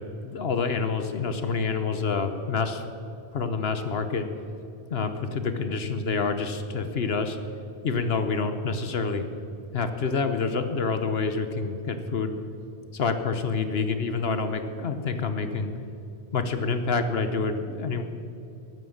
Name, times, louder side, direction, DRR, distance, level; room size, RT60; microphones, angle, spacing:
voice 1, 0.2-2.8 3.3-4.3 4.9-7.4 7.8-9.2 9.7-12.3 12.9-15.7 16.3-18.0, left 4 dB, 65° left, 8 dB, 1.2 m, -27 dB
14.0 x 11.0 x 7.2 m, 2.7 s
omnidirectional pair, 1.1 m